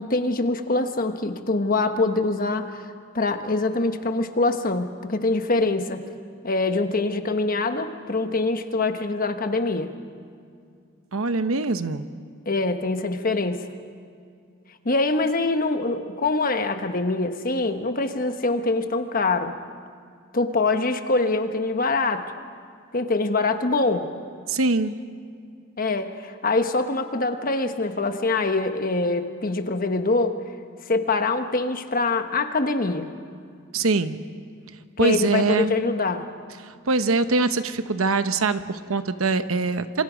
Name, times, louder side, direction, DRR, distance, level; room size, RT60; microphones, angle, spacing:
voice 1, 0.0-6.1 6.4-9.9 12.5-13.6 14.8-19.6 20.3-22.2 22.9-24.1 25.8-30.4 30.9-33.1 35.0-36.3, left 3 dB, 40° left, 7 dB, 1.2 m, -24 dB
voice 2, 11.1-12.0 24.5-24.9 33.7-34.2 35.0-35.7 36.6-40.0, right 3 dB, 75° right, 11 dB, 0.9 m, -23 dB
27.5 x 25.5 x 5.2 m, 2.3 s
head